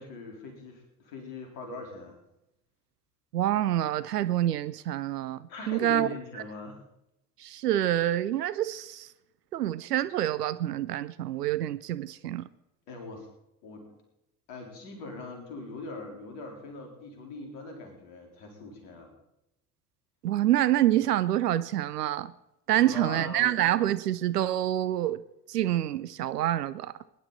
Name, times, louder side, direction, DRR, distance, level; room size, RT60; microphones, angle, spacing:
voice 1, 0.0-2.2 5.5-6.8 12.9-13.3 13.6-14.0 14.5-19.1 22.7-23.5, left 3 dB, 60° left, 2 dB, 4.1 m, -41 dB
voice 2, 3.3-6.1 7.4-9.1 9.5-12.5 20.2-22.3 22.7-25.2 25.5-26.9, right 13 dB, 75° right, 16 dB, 0.7 m, -27 dB
21.0 x 11.0 x 4.1 m, 0.89 s
figure-of-eight pair, 55°, 48 cm